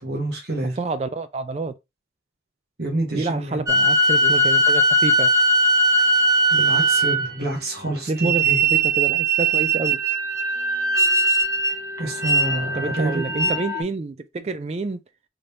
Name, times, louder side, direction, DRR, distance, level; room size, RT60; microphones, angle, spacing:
voice 1, 0.0-0.8 2.8-3.6 4.2-4.4 6.5-8.6 12.0-13.5, right 1 dB, 60° right, 1.3 m, -28 dB
voice 2, 0.6-1.7 3.1-5.3 8.1-10.0 12.7-15.0, right 3 dB, 35° right, 0.3 m, -28 dB
sound 1, 3.7-7.4 8.1-13.8, right 2 dB, 15° right, 0.7 m, -20 dB
3.9 x 3.3 x 2.8 m
head